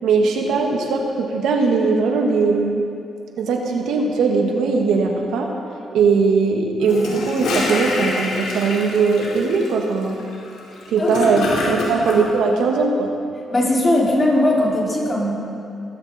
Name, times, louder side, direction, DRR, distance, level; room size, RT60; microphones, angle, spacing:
voice 1, 0.0-2.8 3.4-5.5 5.9-10.2 10.9-13.1, right 4 dB, 85° right, 1 dB, 2.0 m, -19 dB
Gurgling / Toilet flush, 6.8-12.2, left 2 dB, 90° left, 4.3 m, -26 dB
voice 2, 13.5-15.3, left 1 dB, 25° left, -5 dB, 5.3 m, -18 dB
19.5 x 16.5 x 4.4 m, 2.5 s
cardioid pair, 90°, 0 cm